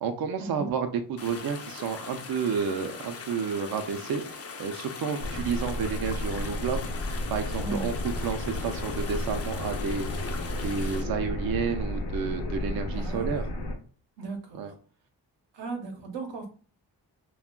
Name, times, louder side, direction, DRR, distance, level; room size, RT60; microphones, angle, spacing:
voice 1, 0.0-6.8 7.3-7.9 8.2-10.3 10.6-13.4 14.6-14.7, right 6 dB, 55° right, 6 dB, 0.5 m, -31 dB
sound 1, 1.2-11.0, left 5 dB, 35° left, 0.5 m, -41 dB
sound 2, 5.2-13.8, left 1 dB, 75° left, 0.8 m, -32 dB
voice 2, 7.6-8.0 12.9-13.5 14.2-14.8 15.5-16.5, right 3 dB, 85° right, 3 dB, 0.8 m, -37 dB
2.3 x 2.1 x 3.6 m, 0.40 s
cardioid pair, 55°, 43 cm